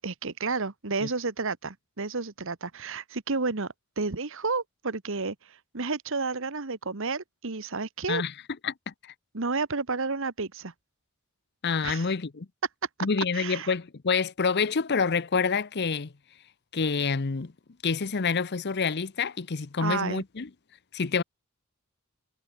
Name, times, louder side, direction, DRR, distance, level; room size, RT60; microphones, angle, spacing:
voice 1, 0.0-8.2 9.3-10.7 11.8-12.1 13.3-13.7 19.8-20.2, right 4 dB, 65° right, 1.4 m, -31 dB
voice 2, 8.6-9.1 11.6-12.5 13.0-16.1 16.7-17.5 17.8-20.5 20.9-21.2, left 5 dB, 50° left, 0.8 m, -27 dB
head